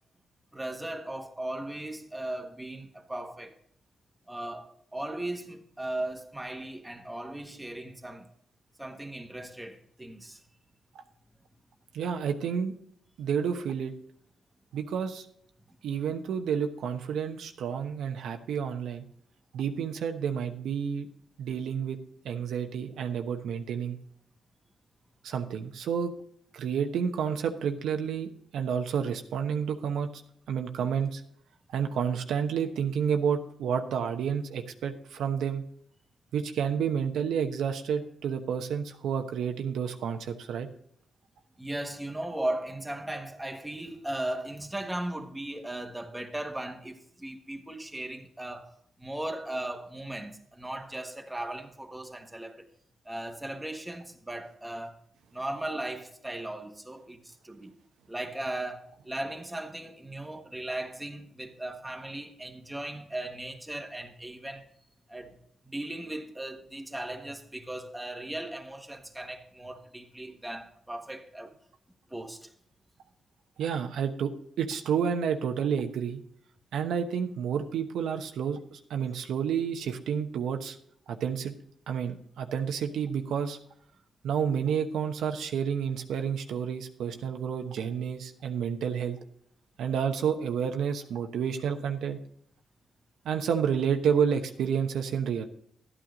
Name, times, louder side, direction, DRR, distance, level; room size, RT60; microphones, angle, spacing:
voice 1, 0.5-3.5 4.3-8.3 8.8-10.4 41.6-48.7 49.0-52.7 53.0-55.0 55.3-57.8 58.1-64.7 65.1-65.3 65.6-71.6 72.1-72.5, right 1 dB, 10° right, 1.5 m, -37 dB
voice 2, 11.9-12.7 13.2-13.9 14.7-15.3 15.8-19.1 19.5-21.1 21.4-22.0 22.2-24.0 25.2-26.1 26.5-30.2 30.5-31.2 31.7-35.6 36.3-40.7 73.6-76.2 76.7-80.8 81.1-81.5 81.9-83.6 84.2-89.2 89.8-92.2 93.2-95.5, right 7 dB, 85° right, 1.0 m, -30 dB
12.5 x 9.1 x 3.9 m
cardioid pair, 80°, 0 cm